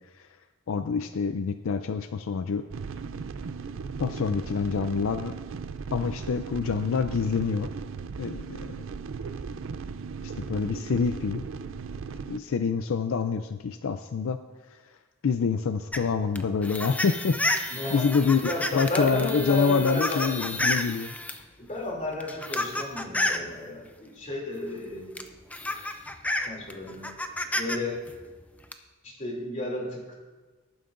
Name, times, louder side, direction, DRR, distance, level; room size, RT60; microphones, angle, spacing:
voice 1, 0.7-2.7 4.0-5.3 5.9-7.7 8.2-8.8 10.2-11.4 12.3-14.4 15.2-17.4 17.9-21.1, left 5 dB, 80° left, 9 dB, 0.4 m, -26 dB
sound 1, 2.7-12.4, right 5 dB, 70° right, 0.4 m, -37 dB
sound 2, 15.9-21.4 22.1-23.5 24.7-24.8 25.2-27.8 28.1-28.7, left 1 dB, 5° left, 0.5 m, -30 dB
voice 2, 17.7-18.1 18.4-20.3 21.6-25.2 26.4-27.1 27.5-28.0 29.0-30.1, left 2 dB, 40° left, -2 dB, 2.7 m, -33 dB
18.5 x 9.0 x 2.6 m, 1.3 s
head